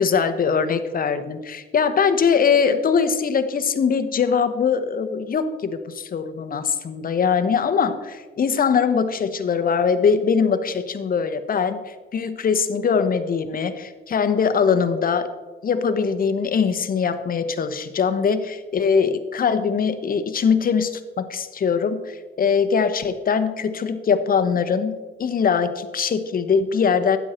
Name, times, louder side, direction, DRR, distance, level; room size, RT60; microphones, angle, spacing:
voice 1, 0.0-15.3 15.6-27.2, left 6 dB, 45° left, 10 dB, 1.1 m, -22 dB
12.5 x 9.3 x 4.4 m, 1.3 s
cardioid pair, 90°, 20 cm